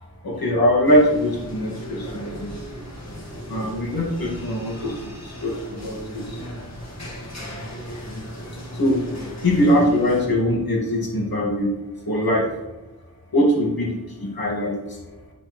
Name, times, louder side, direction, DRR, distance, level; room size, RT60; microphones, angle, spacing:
voice 1, 0.2-2.4 3.5-6.4 8.7-9.0 9.4-11.7 12.1-12.5 13.3-15.0, equal, 80° left, -2 dB, 1.9 m, -22 dB
sound 1, 0.8-10.3, equal, 50° left, 1.9 m, -36 dB
10.0 x 4.2 x 3.1 m, 1.1 s
cardioid pair, 40°, 36 cm